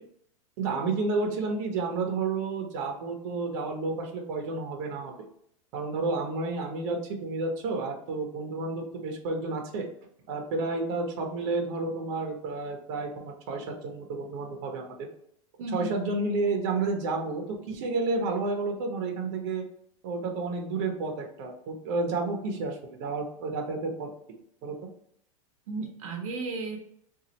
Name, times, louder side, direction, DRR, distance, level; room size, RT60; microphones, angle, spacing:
voice 1, 0.6-5.1 5.7-9.9 10.3-15.1 15.7-19.6 20.0-24.1 24.6-24.8, right 3 dB, 50° right, 2 dB, 1.0 m, -31 dB
voice 2, 15.6-15.9 25.7-26.8, right 3 dB, 75° right, 2 dB, 0.9 m, -34 dB
3.9 x 2.7 x 2.9 m, 0.70 s
supercardioid pair, 145°, 18 cm